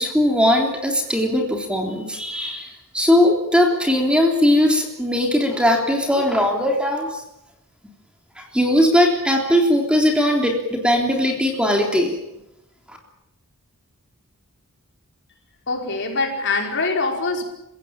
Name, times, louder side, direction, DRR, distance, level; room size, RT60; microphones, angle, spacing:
voice 1, 0.0-7.2 8.4-12.2 12.9-13.0, left 1 dB, 5° right, 2 dB, 3.5 m, -19 dB
voice 2, 15.7-17.4, left 3 dB, 55° left, 2 dB, 5.4 m, -23 dB
29.5 x 16.5 x 8.8 m, 0.86 s
head